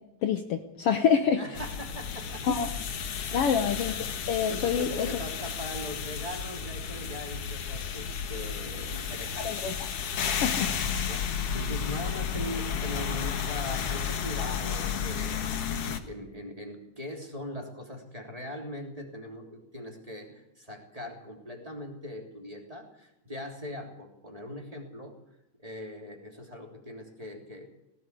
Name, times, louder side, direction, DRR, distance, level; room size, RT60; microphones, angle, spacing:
voice 1, 0.2-1.4 2.5-2.7 3.3-5.1 9.4-9.7 10.4-10.7, left 7 dB, 80° left, 7 dB, 1.3 m, -26 dB
voice 2, 1.4-2.6 3.3-3.7 4.5-9.9 11.0-25.1 25.6-27.7, left 1 dB, 10° right, 1 dB, 3.1 m, -40 dB
sound 1, 1.5-16.0, left 7 dB, 55° left, 2.0 m, -32 dB
18.0 x 17.0 x 8.3 m, 0.88 s
omnidirectional pair, 4.1 m